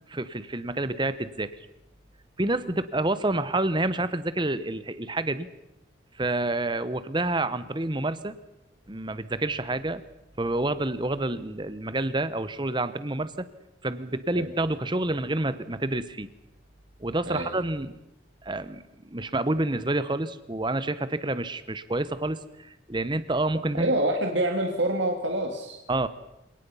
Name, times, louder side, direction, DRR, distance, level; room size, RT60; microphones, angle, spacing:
voice 1, 0.1-1.6 2.4-5.5 6.2-8.4 8.9-10.0 10.4-13.5 13.8-16.3 17.0-18.0 18.4-23.9 25.9-26.1, right 2 dB, 25° right, 14 dB, 1.0 m, -28 dB
voice 2, 23.7-25.8, right 1 dB, 65° right, 3 dB, 2.1 m, -26 dB
28.5 x 18.0 x 5.6 m, 0.89 s
head